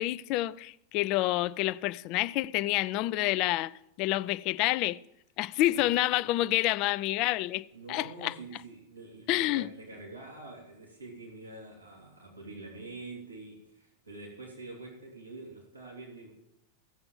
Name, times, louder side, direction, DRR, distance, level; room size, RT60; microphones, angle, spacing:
voice 1, 0.0-5.0 5.4-8.3 9.3-9.7, left 16 dB, 40° left, 0.4 m, -28 dB
voice 2, 7.7-16.3, right 2 dB, 85° right, 3.2 m, -46 dB
16.0 x 7.8 x 7.2 m
figure-of-eight pair, 90°, 0 cm